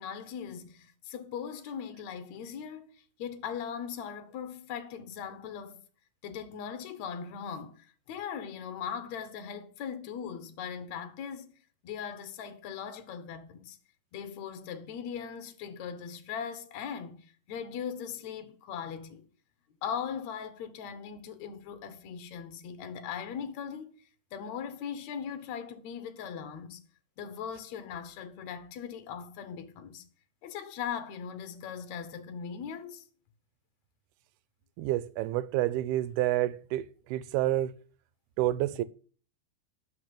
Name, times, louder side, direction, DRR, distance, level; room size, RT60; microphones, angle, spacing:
voice 1, 0.0-5.8 6.2-11.5 11.8-13.8 14.1-17.2 17.5-19.3 19.8-23.9 24.3-26.8 27.2-30.0 30.4-33.0, left 7 dB, 60° left, 2.1 m, -39 dB
voice 2, 34.8-36.9 37.1-37.7 38.4-38.8, right 14 dB, 85° right, 2.7 m, -28 dB
12.0 x 5.8 x 8.2 m
omnidirectional pair, 4.5 m